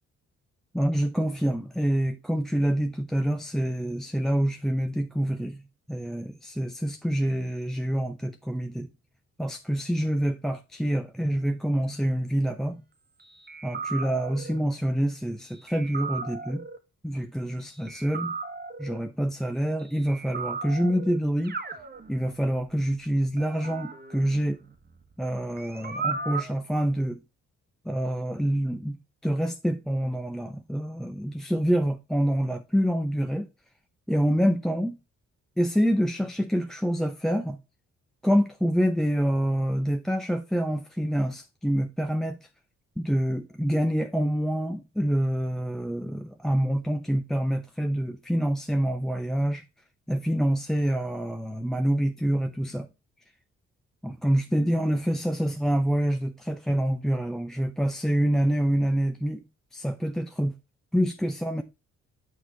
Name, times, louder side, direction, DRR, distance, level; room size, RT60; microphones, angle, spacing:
voice 1, 0.7-5.6 5.9-8.9 9.4-12.8 13.6-16.7 17.0-18.3 18.8-21.6 22.1-24.6 25.2-27.2 27.8-33.5 34.1-35.0 35.6-37.6 38.2-42.5 43.0-49.6 50.1-52.9 54.0-59.4 59.7-60.6 60.9-61.6, equal, ahead, 0.6 m, -26 dB
sound 1, 13.5-14.6 15.7-16.8 17.9-19.0 20.1-21.2 21.4-22.5 23.4-25.2 25.6-26.5, right 4 dB, 30° right, 1.3 m, -36 dB
6.4 x 4.5 x 4.0 m
supercardioid pair, 50°, 32 cm